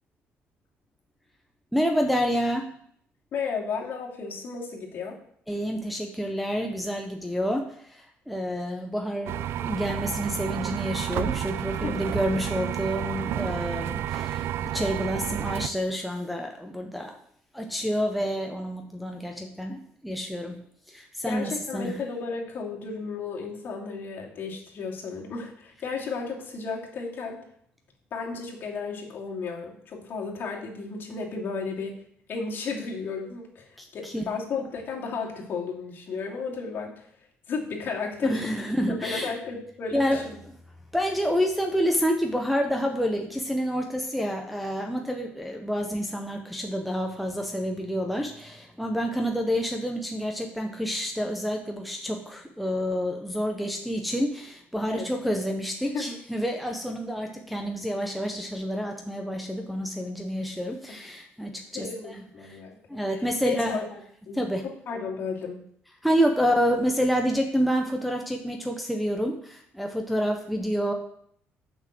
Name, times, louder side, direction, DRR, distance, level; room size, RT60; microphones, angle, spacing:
voice 1, 1.7-2.7 5.5-17.1 17.5-20.6 20.9-21.9 33.8-34.2 38.2-39.3 39.9-40.2 40.9-62.1 62.4-62.6 62.9-63.8 64.3-64.6 66.0-70.9, equal, ahead, 2 dB, 0.9 m, -28 dB
voice 2, 3.3-5.2 11.8-12.0 21.2-27.4 28.1-32.0 32.3-37.0 37.5-38.5 38.9-40.4 54.9-55.1 55.9-56.1 61.7-63.1 63.5-64.0 64.3-65.7, left 5 dB, 50° left, -1 dB, 2.7 m, -34 dB
sound 1, 9.3-15.7, right 11 dB, 65° right, 0.5 m, -31 dB
8.0 x 6.0 x 7.7 m, 0.65 s
cardioid pair, 135°, 4 cm